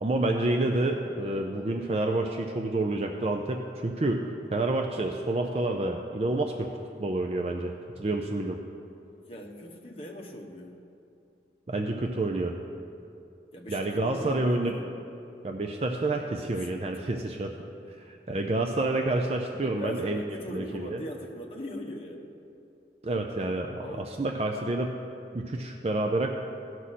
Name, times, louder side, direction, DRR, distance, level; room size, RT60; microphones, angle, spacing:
voice 1, 0.0-4.3 4.5-6.7 7.0-8.6 11.7-12.5 13.7-14.7 15.4-17.5 18.0-20.2 20.5-21.0 23.0-24.9 25.3-26.3, right 2 dB, 35° right, 3 dB, 0.5 m, -28 dB
voice 2, 9.2-10.7 13.5-14.9 16.5-16.7 19.6-22.3 23.8-24.1, left 1 dB, 30° left, 0 dB, 1.0 m, -40 dB
16.5 x 6.2 x 4.2 m, 2.6 s
head